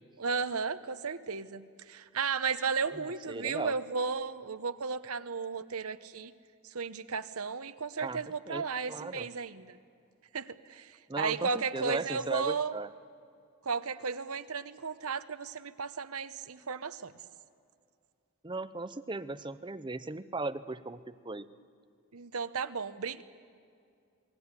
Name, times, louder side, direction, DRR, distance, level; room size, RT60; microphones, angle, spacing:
voice 1, 0.2-6.3 6.7-9.8 10.3-12.8 13.6-17.1 22.1-23.2, right 5 dB, 80° right, 11 dB, 1.0 m, -34 dB
voice 2, 2.9-3.7 8.0-9.3 11.1-12.9 18.4-21.5, right 3 dB, 20° right, 12 dB, 0.7 m, -37 dB
28.5 x 19.0 x 9.8 m, 2.3 s
head